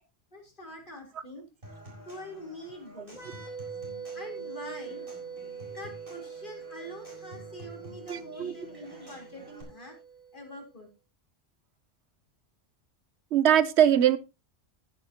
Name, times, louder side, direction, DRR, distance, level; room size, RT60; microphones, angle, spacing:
voice 1, 0.3-1.5 2.1-3.3 4.1-5.0 5.6-10.0 10.3-10.9, equal, 50° left, 4.0 m, -44 dB
Human voice / Acoustic guitar / Percussion, 1.6-9.6, right 1 dB, 55° right, 4.5 m, -50 dB
sound 1, 3.1-10.6, right 6 dB, ahead, 3.2 m, -43 dB
voice 2, 8.1-8.5 13.3-14.2, right 10 dB, 85° right, 1.0 m, -22 dB
14.5 x 9.0 x 2.9 m
omnidirectional pair, 1.1 m